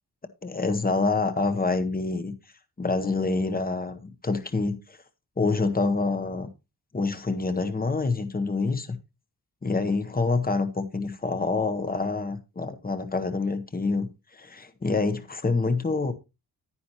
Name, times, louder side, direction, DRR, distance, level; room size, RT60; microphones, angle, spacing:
voice 1, 0.4-2.3 2.8-5.0 5.4-6.5 6.9-9.0 9.6-16.1, left 3 dB, 25° left, 0.9 m, -27 dB
9.8 x 9.4 x 2.9 m
wide cardioid pair, 145°, 39 cm